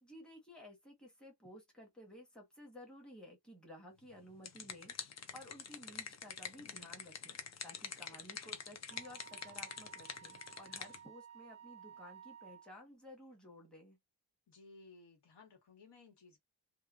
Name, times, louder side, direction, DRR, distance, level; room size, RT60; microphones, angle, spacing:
voice 1, 0.0-14.0, left 1 dB, ahead, 1.0 m, -55 dB
sound 1, 4.1-11.0, left 6 dB, 40° left, 0.5 m, -46 dB
voice 2, 8.1-8.6 14.5-16.4, left 3 dB, 70° left, 1.3 m, -60 dB
Wind instrument woodwind instrument, 8.9-12.7, right 8 dB, 15° right, 0.5 m, -56 dB
2.8 x 2.2 x 2.4 m
wide cardioid pair, 160°, 42 cm